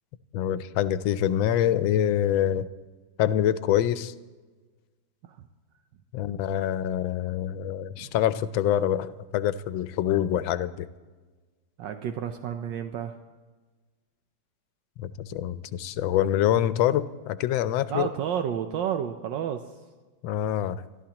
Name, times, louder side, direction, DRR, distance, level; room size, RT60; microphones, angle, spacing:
voice 1, 0.3-2.7 3.2-4.1 6.1-10.9 15.0-18.1 20.2-20.8, left 11 dB, 90° left, 14 dB, 1.4 m, -25 dB
voice 2, 11.8-13.1 17.9-19.6, right 9 dB, 75° right, 6 dB, 1.3 m, -30 dB
26.5 x 12.5 x 2.9 m, 1.3 s
omnidirectional pair, 2.1 m